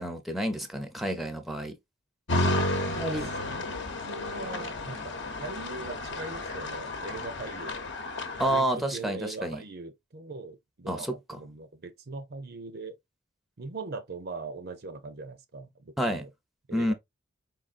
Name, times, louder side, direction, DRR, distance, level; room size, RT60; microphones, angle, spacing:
voice 1, 0.0-1.8 2.8-3.3 8.4-9.6 10.9-11.1 16.0-16.2 16.7-16.9, right 1 dB, ahead, 0.6 m, -29 dB
sound 1, 2.3-8.6, left 1 dB, 60° left, 0.9 m, -32 dB
voice 2, 2.5-3.1 3.5-5.1 5.4-7.8 8.4-13.0 13.6-16.3 16.7-16.9, right 3 dB, 50° right, 0.6 m, -41 dB
4.9 x 3.7 x 2.5 m
head